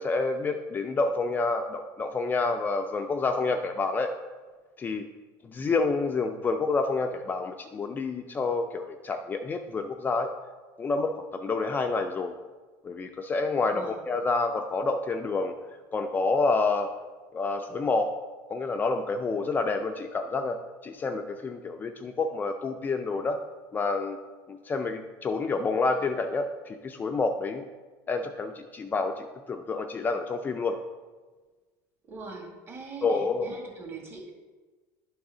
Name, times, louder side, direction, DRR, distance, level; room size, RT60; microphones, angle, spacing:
voice 1, 0.0-4.1 4.8-5.1 5.4-10.3 10.8-12.3 12.8-15.5 15.9-16.9 17.3-18.1 18.5-23.4 23.7-24.2 24.5-27.6 28.1-30.8 33.0-33.6, left 3 dB, 20° left, 5 dB, 0.5 m, -28 dB
voice 2, 32.1-34.3, right 4 dB, 30° right, -1 dB, 2.2 m, -42 dB
11.0 x 3.7 x 4.9 m, 1.3 s
supercardioid pair, 130°, 8 cm